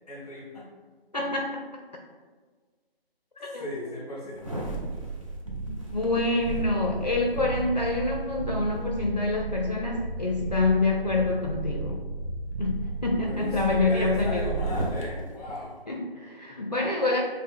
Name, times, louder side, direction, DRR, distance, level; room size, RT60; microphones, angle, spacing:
voice 1, 0.1-0.7 3.6-4.7 13.2-15.8, left 1 dB, 5° left, -6 dB, 0.7 m, -36 dB
voice 2, 1.1-1.6 3.4-3.9 5.9-12.0 12.6-14.6 15.9-17.2, left 3 dB, 45° left, 0 dB, 0.4 m, -27 dB
sound 1, 4.4-15.0 15.5-15.6, right 3 dB, 35° right, 0.6 m, -33 dB
6.0 x 2.0 x 3.5 m, 1.5 s
figure-of-eight pair, 155°, 30 cm